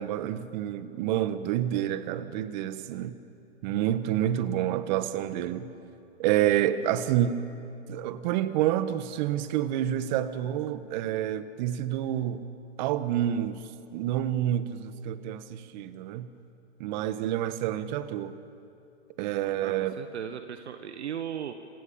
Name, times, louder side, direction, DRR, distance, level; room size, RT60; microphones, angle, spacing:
voice 1, 0.0-3.2 3.6-5.7 6.2-7.4 7.9-12.4 12.8-13.6 13.9-16.3 16.8-18.4 19.2-19.9, right 11 dB, 40° right, 12 dB, 1.5 m, -28 dB
voice 2, 19.6-21.5, right 9 dB, 70° right, 8 dB, 1.5 m, -37 dB
27.0 x 26.5 x 7.3 m, 2.6 s
hypercardioid pair, 125°, 34 cm